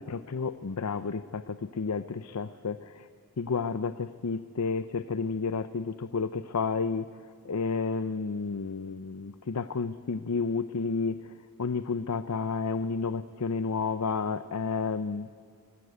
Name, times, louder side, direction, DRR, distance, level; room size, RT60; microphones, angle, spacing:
voice 1, 0.0-3.1 3.4-7.1 7.4-11.2 11.6-15.3, left 4 dB, 90° left, 13 dB, 0.6 m, -31 dB
25.0 x 20.0 x 8.1 m, 2.2 s
head